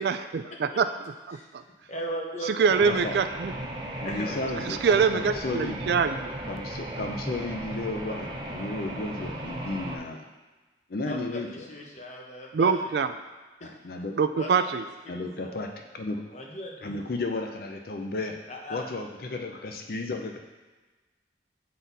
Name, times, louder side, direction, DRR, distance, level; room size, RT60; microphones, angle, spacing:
voice 1, 0.0-1.6 2.4-3.5 4.6-6.3 12.5-13.1 14.2-14.8, right 5 dB, 60° right, 10 dB, 0.3 m, -25 dB
voice 2, 1.9-2.5 4.0-4.6 11.1-12.7 13.6-13.7 14.4-14.7 15.1-15.6 16.3-17.0 18.5-18.9, equal, 40° left, -1 dB, 1.0 m, -38 dB
sound 1, 2.7-10.0, right 1 dB, 25° right, 0.6 m, -36 dB
voice 3, 2.8-3.1 4.0-5.9 6.5-10.3 10.9-11.7 13.6-14.2 15.1-16.2 16.8-18.4 18.7-20.4, left 2 dB, 55° left, 4 dB, 0.6 m, -33 dB
7.6 x 4.1 x 4.0 m, 1.2 s
head